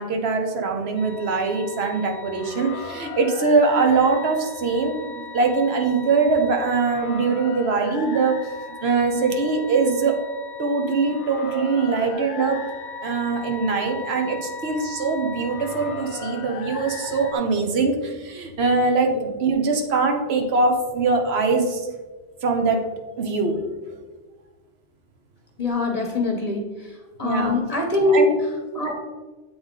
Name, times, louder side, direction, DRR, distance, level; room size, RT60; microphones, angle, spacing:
voice 1, 0.0-8.4 8.8-10.1 10.6-12.6 13.0-19.1 19.4-21.9 22.4-22.8 23.2-23.6 27.2-27.6 28.1-28.3, right 4 dB, 70° right, 4 dB, 1.0 m, -22 dB
sound 1, 1.0-17.3, left 5 dB, 90° left, 0.9 m, -37 dB
voice 2, 25.6-26.6 27.2-28.3 28.7-28.9, left 2 dB, 40° left, 1 dB, 0.7 m, -22 dB
7.9 x 3.5 x 3.6 m, 1.3 s
omnidirectional pair, 1.2 m